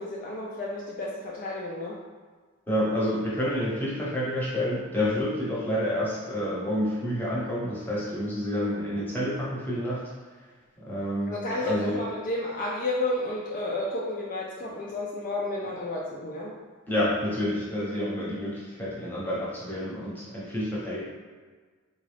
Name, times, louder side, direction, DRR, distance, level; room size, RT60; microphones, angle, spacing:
voice 1, 0.0-1.9 11.3-16.5, left 1 dB, 40° left, -4 dB, 0.4 m, -31 dB
voice 2, 2.7-10.0 10.8-11.3 11.6-12.0 16.9-21.0, left 1 dB, 10° left, -8 dB, 0.8 m, -29 dB
3.8 x 2.3 x 3.2 m, 1.5 s
head